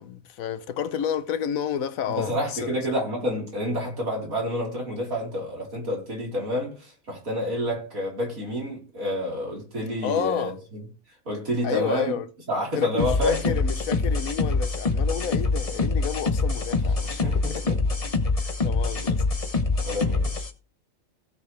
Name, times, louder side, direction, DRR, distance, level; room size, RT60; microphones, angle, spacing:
voice 1, 0.0-2.3 2.6-2.8 10.0-10.5 11.6-12.3 12.7-17.7 18.6-19.2, left 8 dB, 75° left, 1.2 m, -30 dB
voice 2, 2.1-10.8 11.3-12.1 12.5-13.4 16.8-16.9 17.2-17.8 19.8-20.5, equal, 80° right, 4.6 m, -29 dB
sound 1, 13.0-20.5, left 3 dB, 30° left, 0.9 m, -25 dB
16.0 x 6.9 x 3.3 m
omnidirectional pair, 1.5 m